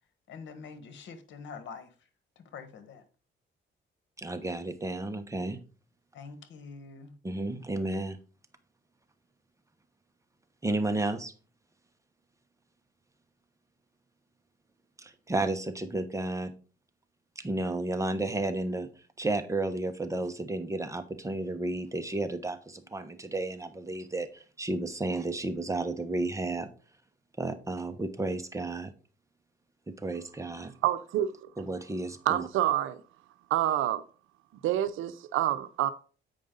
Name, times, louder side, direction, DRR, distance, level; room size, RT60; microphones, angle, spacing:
voice 1, 0.3-1.9 2.5-3.0 6.1-7.2, left 5 dB, 70° left, 1.5 m, -45 dB
voice 2, 4.2-5.6 7.2-8.2 10.6-11.3 15.0-16.5 17.4-18.9 19.2-26.7 27.4-28.9 29.9-30.7 31.6-32.5, right 2 dB, 15° right, 1.1 m, -32 dB
voice 3, 30.8-31.3 32.3-33.0 33.5-34.0 34.6-35.9, right 12 dB, 90° right, 0.6 m, -27 dB
8.5 x 5.2 x 3.8 m
cardioid pair, 90°, 20 cm